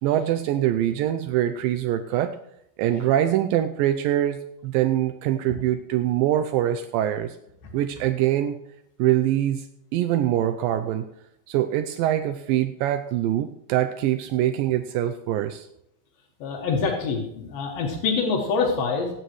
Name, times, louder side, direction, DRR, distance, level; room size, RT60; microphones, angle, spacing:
voice 1, 0.0-2.3 2.8-4.4 4.6-7.4 7.7-8.6 9.0-9.7 9.9-11.1 11.5-15.7, right 12 dB, 80° right, 8 dB, 2.3 m, -23 dB
voice 2, 16.4-19.1, left 4 dB, 80° left, -1 dB, 3.5 m, -25 dB
25.5 x 9.2 x 3.1 m, 0.80 s
omnidirectional pair, 4.1 m